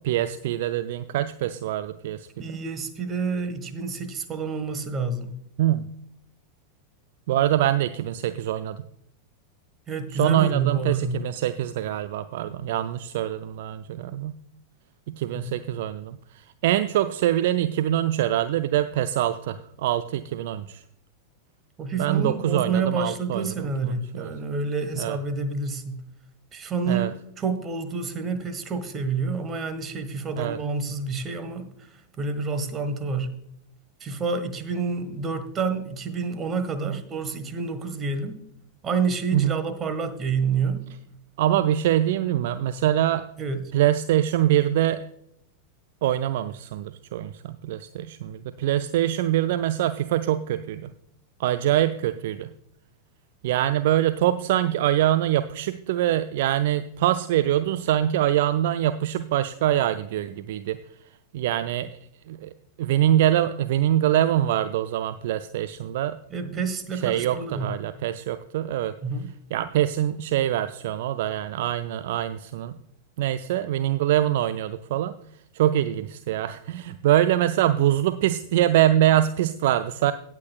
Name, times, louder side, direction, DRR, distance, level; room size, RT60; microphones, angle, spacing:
voice 1, 0.0-2.6 5.6-5.8 7.3-8.8 10.1-14.4 15.1-20.8 22.0-24.3 25.0-25.2 26.9-27.1 30.4-30.6 36.8-37.0 39.3-39.6 41.4-43.3 43.7-45.0 46.0-50.9 51.4-52.5 53.4-60.8 61.3-61.9 62.3-62.5 62.8-66.2 66.5-66.6 67.0-68.9 69.5-72.8 73.2-75.2 75.5-80.1, right 12 dB, 55° right, 12 dB, 0.4 m, -24 dB
voice 2, 2.4-5.3 9.9-11.2 15.3-15.4 21.8-26.0 26.5-27.1 27.4-31.7 32.2-33.4 34.0-38.4 38.8-40.9 43.4-43.7 66.3-67.7 69.0-69.3, right 4 dB, 25° right, 9 dB, 1.5 m, -28 dB
17.5 x 8.3 x 2.3 m, 0.72 s
figure-of-eight pair, 90°, 0 cm